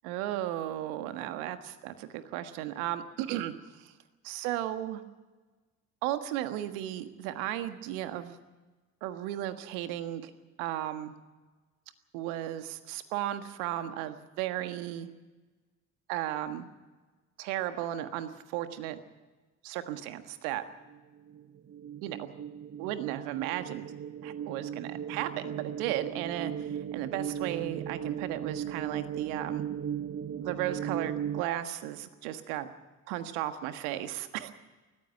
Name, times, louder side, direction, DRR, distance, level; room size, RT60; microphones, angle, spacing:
voice 1, 0.0-3.9 4.2-5.0 6.0-8.4 9.0-10.3 10.6-11.1 12.1-15.1 16.1-16.7 17.4-19.0 19.6-20.6 22.0-22.3 22.8-23.9 24.2-29.6 30.4-32.7 33.1-34.5, right 13 dB, 75° right, 9 dB, 1.6 m, -35 dB
sound 1, 20.9-31.4, right 9 dB, 30° right, 0.8 m, -37 dB
20.0 x 14.5 x 9.1 m, 1.3 s
hypercardioid pair, 55°, 44 cm